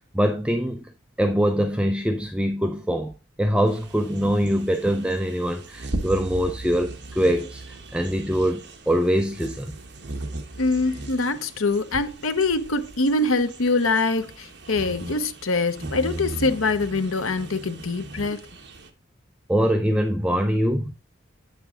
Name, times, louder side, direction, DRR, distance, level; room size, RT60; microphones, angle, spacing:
voice 1, 0.1-0.8 1.2-3.1 3.4-9.7 19.5-20.9, equal, 5° right, 0.5 m, -23 dB
sound 1, 3.7-18.9, right 2 dB, 55° right, 1.2 m, -38 dB
voice 2, 10.6-18.4, left 3 dB, 85° left, 0.9 m, -24 dB
8.6 x 6.8 x 3.6 m
head